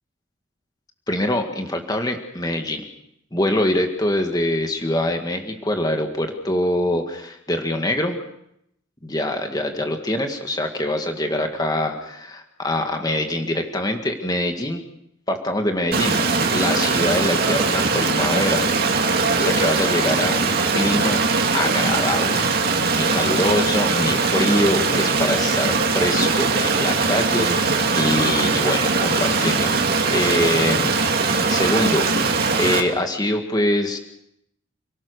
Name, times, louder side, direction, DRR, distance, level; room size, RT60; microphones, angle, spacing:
voice 1, 1.1-2.8 3.3-8.2 9.0-14.8 15.3-16.2 16.5-18.6 19.4-21.2 21.5-29.7 30.1-31.0 31.5-34.0, left 1 dB, 20° left, 5 dB, 1.9 m, -24 dB
Stream, 15.9-32.8, right 4 dB, 50° right, 2.7 m, -20 dB
29.5 x 18.0 x 6.6 m, 0.77 s
head